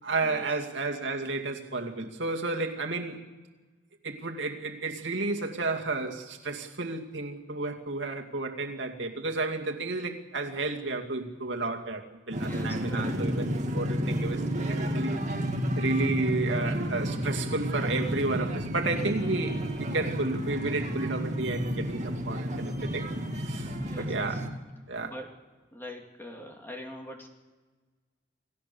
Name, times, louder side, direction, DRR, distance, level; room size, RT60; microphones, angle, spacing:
voice 1, 0.0-3.2 4.0-14.4 14.7-15.2 15.8-23.1 23.4-23.7 24.0-24.5 24.9-25.1, right 3 dB, 70° right, 3 dB, 2.5 m, -32 dB
sound 1, 12.3-24.5, equal, 40° right, 2.3 m, -31 dB
voice 2, 12.4-13.2 23.7-24.4 25.0-25.3 25.7-27.3, equal, 10° left, 2 dB, 2.6 m, -43 dB
29.0 x 18.5 x 7.0 m, 1.3 s
head